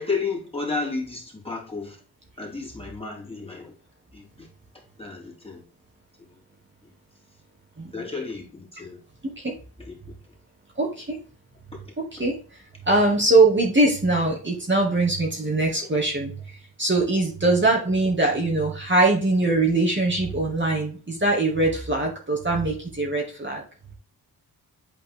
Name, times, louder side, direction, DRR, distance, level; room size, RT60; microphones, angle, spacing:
voice 1, 0.0-2.0 2.4-3.7 4.1-4.5 5.0-5.6 7.9-9.0 9.8-10.0 11.8-11.9 15.9-16.0, left 4 dB, 15° left, -2 dB, 3.2 m, -32 dB
voice 2, 9.2-9.5 10.8-11.2 12.2-12.3 12.9-16.3 16.8-23.6, right 2 dB, 30° right, -2 dB, 2.3 m, -22 dB
8.8 x 4.3 x 3.7 m, 0.40 s
supercardioid pair, 55°, 40 cm